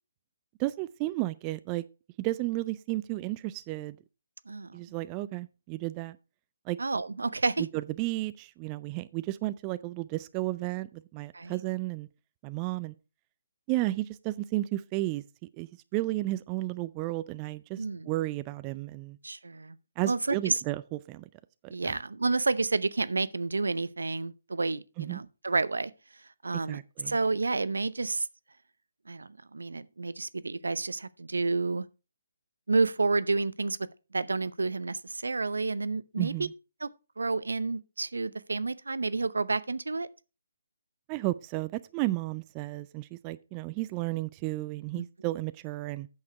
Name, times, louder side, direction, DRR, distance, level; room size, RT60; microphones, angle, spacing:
voice 1, 0.6-1.9 2.2-4.0 4.7-6.2 6.7-6.8 7.6-12.1 12.4-12.9 13.7-15.2 15.6-19.2 20.0-21.2 21.6-22.0 25.0-25.2 26.7-27.2 36.2-36.5 41.1-46.1, right 18 dB, 25° right, 0.4 m, -33 dB
voice 2, 4.5-4.8 6.8-7.7 11.3-11.6 17.8-18.1 19.2-19.8 20.0-20.6 21.7-25.9 26.4-26.8 27.1-28.3 29.1-31.8 32.7-33.8 34.1-36.5 36.8-36.9 37.2-40.1 45.0-45.1, right 3 dB, 75° right, 0.6 m, -30 dB
8.4 x 6.5 x 4.7 m
figure-of-eight pair, 145°, 0 cm